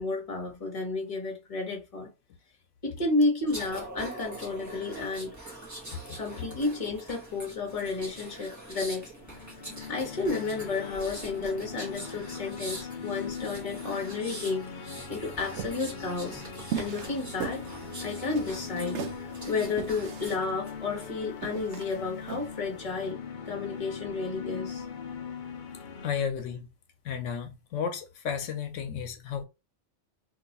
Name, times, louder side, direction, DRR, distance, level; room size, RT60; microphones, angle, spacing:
voice 1, 0.0-2.1 2.8-5.3 6.1-9.1 9.9-16.4 16.8-17.6 18.0-23.2 23.5-24.8, left 3 dB, 30° left, 1.0 m, -32 dB
sound 1, 3.5-20.4 20.8-21.1, right 1 dB, 15° right, 0.8 m, -44 dB
sound 2, 9.1-26.1, left 6 dB, 55° left, 0.6 m, -40 dB
sound 3, 15.5-23.0, right 8 dB, 70° right, 0.9 m, -39 dB
voice 2, 26.0-26.7 27.0-29.4, left 7 dB, 85° left, 1.0 m, -33 dB
2.8 x 2.3 x 3.9 m
omnidirectional pair, 1.3 m